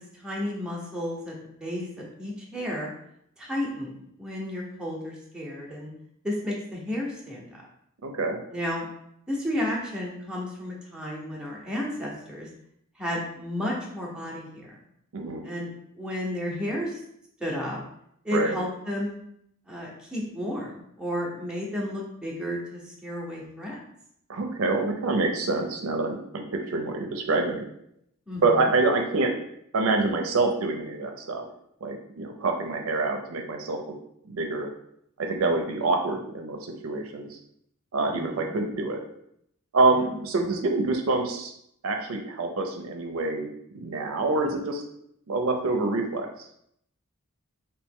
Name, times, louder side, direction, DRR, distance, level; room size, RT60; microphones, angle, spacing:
voice 1, 0.0-1.3 1.6-1.8 2.2-2.9 3.4-3.9 4.2-5.9 6.2-7.6 8.5-8.8 9.3-12.5 13.0-14.7 15.4-15.7 16.0-17.0 17.4-17.8 18.2-19.2 19.7-23.8 28.3-28.4 38.0-38.5 40.0-40.2, left 1 dB, 5° right, -4 dB, 0.7 m, -32 dB
voice 2, 8.0-8.4 15.1-15.4 18.3-18.6 24.3-27.7 28.4-29.3 29.7-31.4 31.8-33.8 34.3-34.7 35.2-37.4 37.9-39.0 39.7-41.5 41.8-44.8 45.3-46.3, right 3 dB, 75° right, 3 dB, 0.5 m, -26 dB
3.0 x 2.9 x 3.5 m, 0.73 s
head